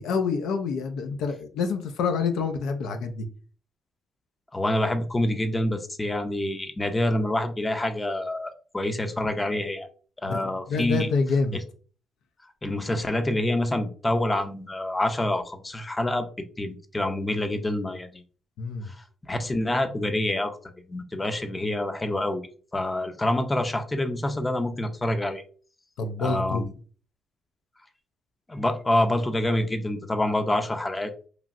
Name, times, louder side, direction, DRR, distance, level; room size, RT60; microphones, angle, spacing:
voice 1, 0.0-3.3 10.2-11.6 18.6-18.9 26.0-26.6, left 4 dB, 85° left, 7 dB, 0.3 m, -27 dB
voice 2, 4.5-9.9 10.2-11.1 12.6-16.3 16.6-18.2 18.9-20.5 20.9-22.5 22.7-25.4 26.2-26.7 28.5-31.1, left 1 dB, 20° left, 7 dB, 0.5 m, -27 dB
3.0 x 2.5 x 2.5 m, 0.40 s
cardioid pair, 90°, 0 cm